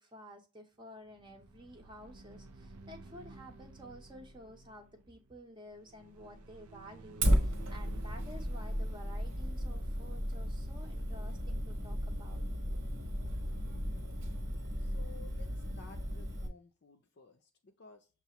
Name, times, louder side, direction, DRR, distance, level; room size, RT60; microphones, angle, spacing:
voice 1, 0.0-12.4, equal, 20° right, 0.8 m, -52 dB
sound 1, 1.0-11.4, right 3 dB, 90° right, 0.6 m, -54 dB
Fire, 7.2-16.5, equal, 60° right, 1.2 m, -34 dB
voice 2, 14.8-18.1, left 4 dB, 50° left, 0.5 m, -56 dB
6.7 x 2.5 x 2.9 m
head